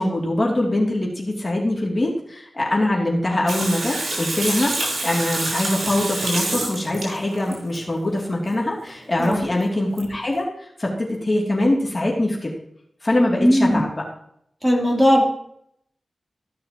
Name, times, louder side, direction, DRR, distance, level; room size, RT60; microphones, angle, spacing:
voice 1, 0.0-4.7 5.0-12.5 13.0-14.0, left 1 dB, 40° left, -2 dB, 2.9 m, -23 dB
Water tap faucet / Sink (filling or washing), 3.5-7.8 9.2-9.3 9.6-9.7 10.0-10.1, right 2 dB, 90° right, 4.2 m, -27 dB
voice 2, 13.4-13.9 14.6-15.2, equal, 10° right, -2 dB, 3.5 m, -17 dB
15.5 x 6.3 x 3.0 m, 0.71 s
cardioid pair, 45°, 0 cm